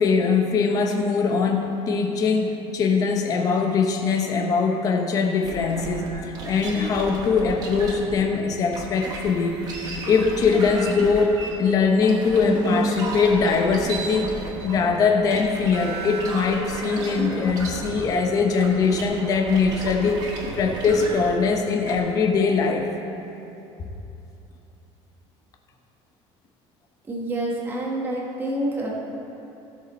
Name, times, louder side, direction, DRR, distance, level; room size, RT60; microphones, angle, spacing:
voice 1, 0.0-9.6 10.0-14.4 14.6-20.2 20.6-22.9 23.8-23.9, left 5 dB, 30° left, 3 dB, 0.9 m, -22 dB
sound 1, 5.4-8.3 8.7-22.0, right 2 dB, 35° right, 1.4 m, -33 dB
voice 2, 27.1-28.9, right 1 dB, 20° right, -2 dB, 1.5 m, -27 dB
16.0 x 6.7 x 4.3 m, 2.9 s
cardioid pair, 180°, 12 cm